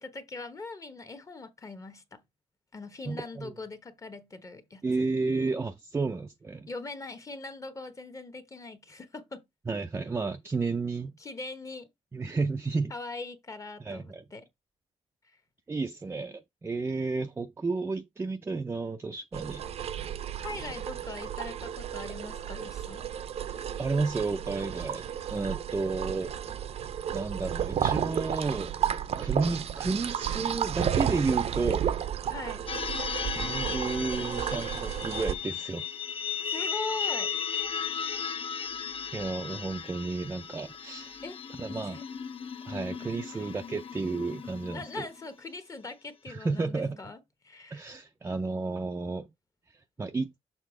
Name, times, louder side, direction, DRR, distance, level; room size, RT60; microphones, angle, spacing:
voice 1, 0.0-2.2 2.7-5.1 6.7-9.4 11.2-11.9 12.9-14.5 20.4-23.1 32.3-32.6 34.5-34.7 36.5-37.3 41.2-41.4 41.8-42.0 43.3-43.5 44.7-47.2 47.4-47.9, left 3 dB, 25° left, 1.1 m, -41 dB
voice 2, 3.1-3.5 4.8-6.7 9.7-11.1 12.1-12.9 13.8-14.2 15.7-19.6 23.8-26.3 27.1-28.7 29.2-31.9 33.4-35.9 39.1-41.2 41.6-42.0 42.6-45.1 46.3-47.0 47.7-49.3 50.0-50.3, right 3 dB, 20° right, 0.5 m, -32 dB
draining water, 19.3-35.3, right 9 dB, 55° right, 0.6 m, -32 dB
sound 1, 32.7-45.2, left 6 dB, 45° left, 0.7 m, -36 dB
6.7 x 3.4 x 4.8 m
cardioid pair, 125°, 12 cm